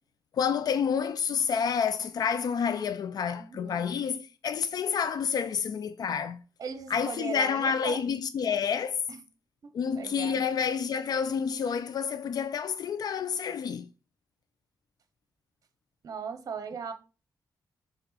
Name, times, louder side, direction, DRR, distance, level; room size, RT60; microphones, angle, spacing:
voice 1, 0.3-6.4 6.9-9.0 9.7-13.9, left 7 dB, 65° left, 0.3 m, -29 dB
voice 2, 3.4-3.8 6.6-8.0 9.1-9.2 10.0-10.4 16.0-16.9, right 6 dB, 55° right, 0.9 m, -38 dB
6.8 x 3.6 x 4.0 m
wide cardioid pair, 135°, 7 cm